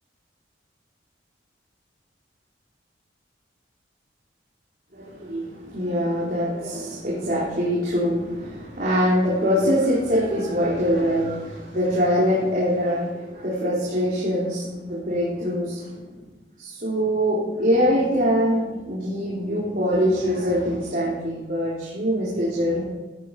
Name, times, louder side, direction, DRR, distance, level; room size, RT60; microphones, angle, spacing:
voice 1, 4.9-16.1 16.6-22.8, equal, 50° right, -7 dB, 3.9 m, -23 dB
15.0 x 13.0 x 4.9 m, 1.2 s
head